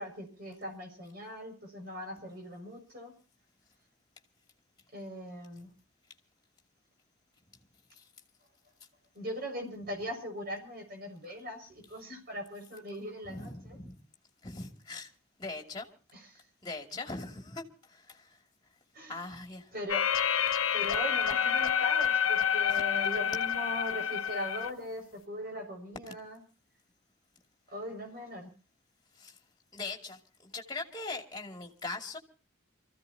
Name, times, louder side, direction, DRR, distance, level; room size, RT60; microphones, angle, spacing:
voice 1, 0.0-3.1 4.9-5.7 9.1-13.8 16.1-16.4 18.9-19.2 19.7-20.0 20.7-26.4 27.7-28.5, equal, 45° right, 6.1 m, -40 dB
voice 2, 13.3-13.9 14.4-15.1 15.4-15.9 16.6-18.4 19.1-19.7 22.7-22.8 26.1-26.2 29.2-29.4 29.7-32.2, left 3 dB, 20° left, 2.6 m, -41 dB
sound 1, 19.9-24.7, left 8 dB, 85° left, 1.0 m, -28 dB
28.5 x 15.5 x 2.8 m
head